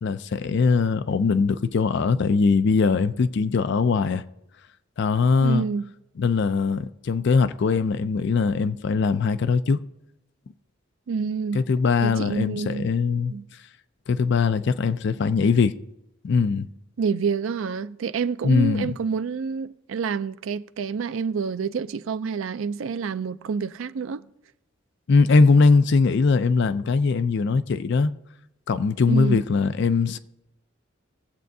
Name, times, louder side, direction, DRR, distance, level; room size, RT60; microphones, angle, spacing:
voice 1, 0.0-4.2 5.0-5.6 6.2-9.8 11.5-13.3 14.1-15.8 16.2-16.7 18.4-18.9 25.1-28.1 28.7-30.2, left 4 dB, 60° left, 0.4 m, -21 dB
voice 2, 5.4-5.9 11.1-11.6 12.0-12.9 13.3-13.5 17.0-24.3 29.1-29.4, right 5 dB, 75° right, 0.4 m, -28 dB
21.5 x 7.5 x 2.7 m
head